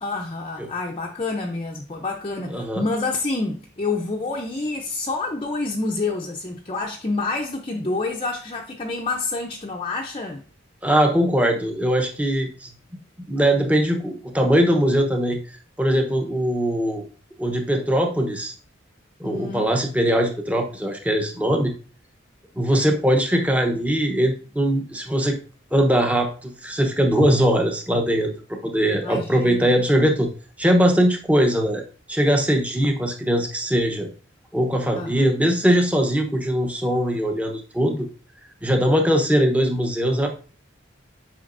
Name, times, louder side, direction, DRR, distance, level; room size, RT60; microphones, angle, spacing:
voice 1, 0.0-10.4 19.2-19.7 29.0-29.7 35.0-35.3, left 3 dB, 25° left, 0.6 m, -28 dB
voice 2, 2.5-2.8 10.8-12.7 13.3-15.4 15.8-17.0 17.4-18.5 19.2-21.7 22.6-25.4 25.7-30.3 30.6-31.8 32.1-34.1 34.5-38.1 38.6-40.3, equal, 5° right, 0.9 m, -21 dB
8.6 x 5.6 x 2.6 m
head